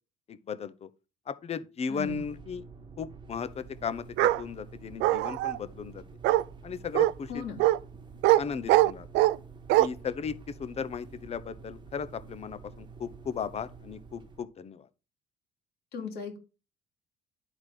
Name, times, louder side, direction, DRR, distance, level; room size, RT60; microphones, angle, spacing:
voice 1, 0.3-0.9 1.3-2.6 3.0-6.0 6.6-7.4 8.4-9.1 9.8-10.3 10.6-14.9, left 6 dB, 40° left, 0.8 m, -36 dB
voice 2, 1.9-2.2 7.3-7.6 15.9-16.4, left 5 dB, 70° left, 2.6 m, -37 dB
sound 1, 2.0-14.4, right 4 dB, 25° right, 1.2 m, -49 dB
Bark, 4.2-4.4 5.0-5.6 6.2-6.4 6.9-7.1 7.6-7.8 8.2-8.4 8.7-9.4 9.7-9.9, right 17 dB, 90° right, 0.5 m, -22 dB
11.0 x 4.0 x 4.9 m
cardioid pair, 110°, 17 cm